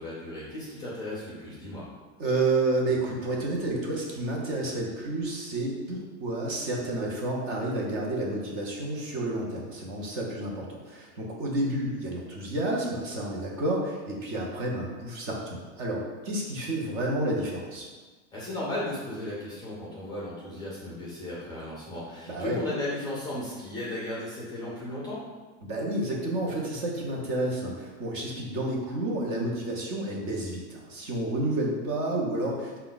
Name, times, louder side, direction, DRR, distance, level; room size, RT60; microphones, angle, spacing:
voice 1, 0.0-1.8 18.3-25.2, left 1 dB, 10° left, -7 dB, 0.6 m, -35 dB
voice 2, 2.2-17.9 22.3-22.6 25.6-32.8, right 2 dB, 35° right, -1 dB, 0.7 m, -30 dB
4.9 x 2.3 x 3.9 m, 1.3 s
supercardioid pair, 170°, 39 cm